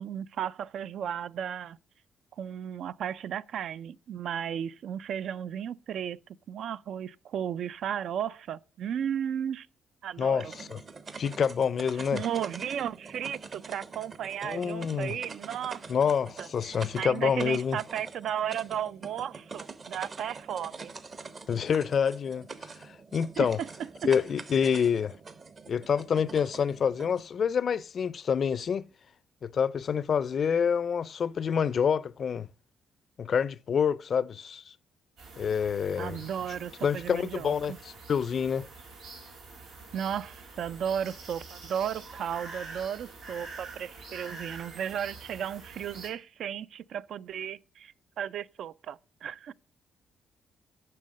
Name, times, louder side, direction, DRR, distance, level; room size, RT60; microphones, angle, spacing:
voice 1, 0.0-1.8 2.4-6.2 6.5-9.7 10.0-10.5 12.0-15.9 16.4-20.9 23.4-23.7 36.0-37.8 39.9-49.5, right 9 dB, 70° right, 0.3 m, -34 dB
voice 2, 10.2-10.8 11.2-12.2 14.4-15.2 15.9-17.8 21.5-22.4 23.1-23.6 24.0-25.1 25.7-28.8 29.4-32.5 33.2-34.6 35.4-36.2 36.8-37.7 38.1-38.7, left 7 dB, 50° left, 0.4 m, -27 dB
sound 1, 10.2-27.2, right 4 dB, 40° right, 0.8 m, -45 dB
sound 2, 35.2-46.1, right 3 dB, 90° right, 4.0 m, -46 dB
7.6 x 5.6 x 6.4 m
cardioid pair, 90°, 0 cm